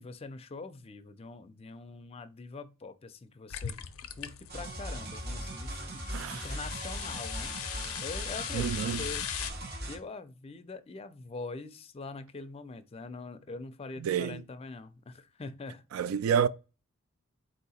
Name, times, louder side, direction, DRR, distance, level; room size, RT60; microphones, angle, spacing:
voice 1, 0.0-3.8 4.2-9.2 9.9-15.8, left 3 dB, 30° left, 0.4 m, -43 dB
sound 1, 3.5-5.5 6.0-9.5, left 10 dB, 85° left, 0.5 m, -39 dB
sound 2, 4.5-10.0, right 1 dB, 50° right, 0.9 m, -39 dB
voice 2, 6.1-6.5 8.5-9.0 14.0-14.4 15.9-16.5, right 8 dB, 75° right, 0.3 m, -29 dB
4.2 x 2.7 x 4.1 m
head